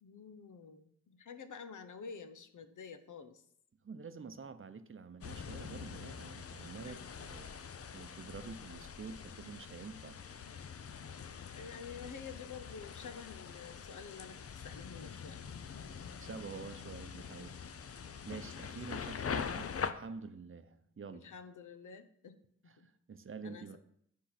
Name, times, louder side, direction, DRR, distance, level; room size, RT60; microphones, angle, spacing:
voice 1, 0.0-3.4 6.8-7.2 11.5-15.5 17.9-18.1 21.1-22.4 22.8-22.9 23.4-23.8, left 6 dB, 80° left, 10 dB, 0.8 m, -49 dB
voice 2, 3.8-7.6 7.9-10.2 16.2-17.6 17.8-21.3 22.7-23.8, right 5 dB, 45° right, 10 dB, 0.7 m, -48 dB
sound 1, 5.2-19.9, left 6 dB, 50° left, 0.6 m, -44 dB
10.0 x 3.8 x 5.8 m, 0.69 s
wide cardioid pair, 90°, 30 cm